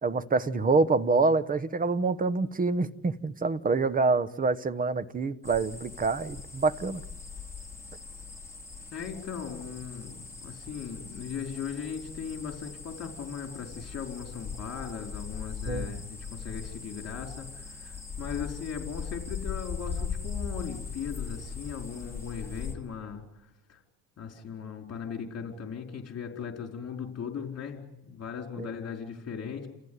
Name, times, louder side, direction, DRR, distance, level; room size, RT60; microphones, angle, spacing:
voice 1, 0.0-7.0 15.7-16.0 28.6-28.7, right 3 dB, 20° right, 1.0 m, -26 dB
sound 1, 5.4-22.7, left 5 dB, 5° left, 5.0 m, -40 dB
voice 2, 8.9-23.2 23.7-23.8 24.2-29.7, left 7 dB, 35° left, 4.6 m, -38 dB
30.0 x 15.0 x 9.7 m
supercardioid pair, 110°, 42 cm